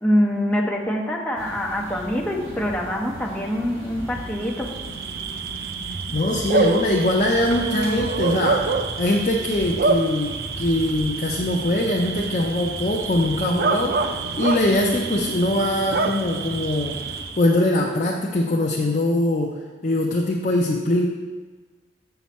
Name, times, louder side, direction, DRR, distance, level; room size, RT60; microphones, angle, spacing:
voice 1, 0.0-4.7, equal, 10° left, -1 dB, 0.7 m, -24 dB
sound 1, 1.3-17.3, right 1 dB, 80° right, 2.5 m, -37 dB
Bark / Cricket, 4.3-17.6, right 4 dB, 55° right, 0.4 m, -27 dB
voice 2, 6.1-19.6 19.8-21.1, left 1 dB, 40° left, -1 dB, 0.5 m, -22 dB
7.1 x 5.8 x 4.2 m, 1.4 s
head